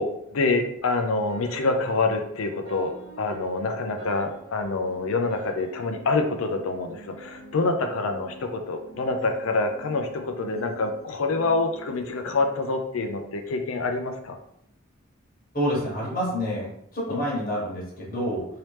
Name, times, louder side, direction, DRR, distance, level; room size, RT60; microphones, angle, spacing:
voice 1, 0.0-14.4 17.1-17.2, left 3 dB, 80° left, 5 dB, 0.5 m, -26 dB
sound 1, 1.0-13.2, right 2 dB, 65° right, 0.8 m, -47 dB
voice 2, 15.5-18.5, equal, 45° left, -4 dB, 1.2 m, -28 dB
3.1 x 2.8 x 3.2 m, 0.72 s
head